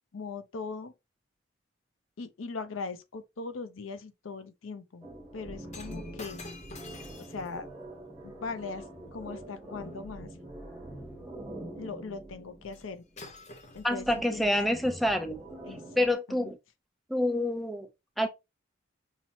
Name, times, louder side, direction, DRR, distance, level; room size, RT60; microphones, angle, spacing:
voice 1, 0.1-0.9 2.2-5.1 5.3-6.4 7.2-7.7 8.2-8.8 9.1-10.3 11.8-13.0 13.7-14.1 14.3-14.5 15.7-16.5, left 4 dB, 80° left, 0.6 m, -40 dB
sound 1, 5.0-13.2 14.0-16.1, right 1 dB, 15° right, 1.2 m, -44 dB
Shatter, 5.7-10.1 12.7-12.9 13.2-14.7 15.4-15.5, left 3 dB, 35° left, 0.7 m, -50 dB
voice 2, 13.8-15.4 16.0-16.6 17.1-17.9 18.2-18.3, left 1 dB, ahead, 0.4 m, -27 dB
5.6 x 2.0 x 2.8 m
head